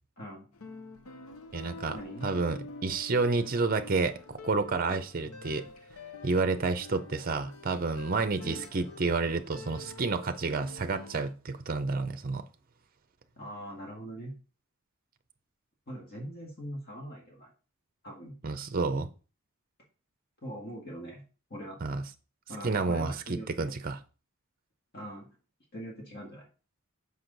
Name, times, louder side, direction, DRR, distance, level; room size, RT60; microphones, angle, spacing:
voice 1, 0.2-0.5 1.9-2.3 8.4-8.7 13.4-14.3 15.9-17.5 18.0-18.3 20.4-21.2 21.5-21.8 22.5-23.7 24.9-25.3 25.7-26.5, equal, 45° left, 1.9 m, -42 dB
sound 1, 0.5-11.3, left 3 dB, 80° left, 0.8 m, -47 dB
voice 2, 1.5-2.0 2.2-5.6 6.2-12.4 18.4-19.1 21.8-22.0 22.6-24.0, right 3 dB, 40° right, 0.5 m, -30 dB
6.2 x 5.4 x 3.9 m
head